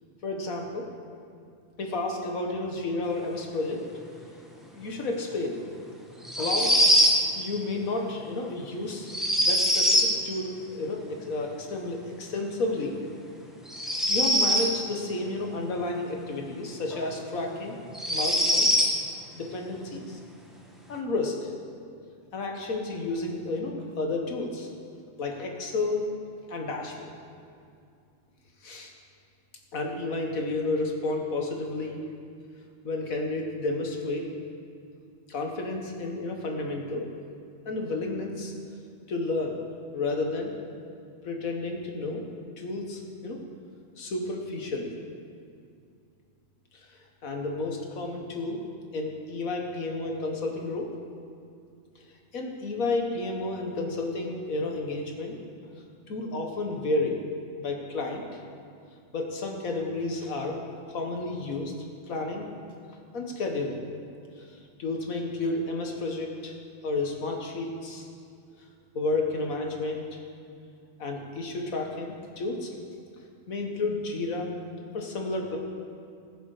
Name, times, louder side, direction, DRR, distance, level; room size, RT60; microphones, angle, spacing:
voice 1, 0.2-0.9 1.8-3.8 4.7-5.6 6.4-6.8 7.4-9.1 9.4-13.0 14.1-17.8 18.1-18.9 19.3-20.2 20.9-21.4 22.3-24.7 25.2-26.1 26.5-27.1 28.6-28.9 29.7-32.0 32.8-34.3 35.3-37.0 37.7-38.5 39.1-39.6 39.9-40.5 41.2-42.2 42.6-43.4 44.0-45.0 46.7-46.9 47.2-48.6 48.9-50.9 52.3-55.3 56.1-57.2 57.6-58.2 59.1-60.6 60.9-61.7 62.1-62.5 63.1-63.9 64.4-66.5 66.8-68.1 68.9-70.2 71.0-72.7 73.5-74.6 74.9-75.6, left 2 dB, 90° left, 2 dB, 1.9 m, -31 dB
sound 1, 6.2-7.2 9.1-10.1 13.7-14.7 16.9-17.0 17.9-18.9, equal, ahead, 1.4 m, -22 dB
20.0 x 7.2 x 4.9 m, 2.4 s
omnidirectional pair, 1.4 m